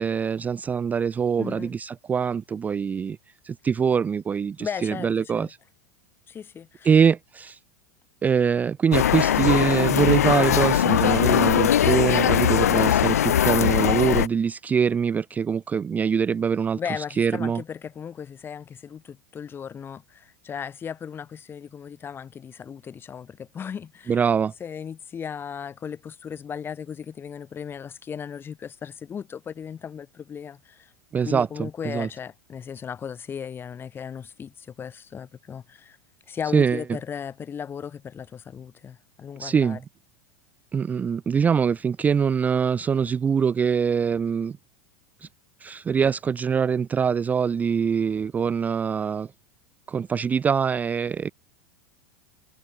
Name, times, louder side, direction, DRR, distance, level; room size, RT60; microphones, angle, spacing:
voice 1, 0.0-3.2 3.4-5.6 6.8-7.6 8.2-17.6 24.1-24.5 31.1-32.1 36.5-36.8 39.4-39.8 40.7-44.6 45.2-45.3 45.6-49.3 49.9-51.3, right 6 dB, 20° right, 0.4 m, -23 dB
voice 2, 1.4-1.7 4.6-5.5 6.3-6.9 16.8-24.2 24.6-30.9 31.2-36.0 36.3-39.8, left 7 dB, 25° left, 5.2 m, -36 dB
sound 1, 8.9-14.3, left 10 dB, 75° left, 1.0 m, -20 dB
hypercardioid pair, 90°, 8 cm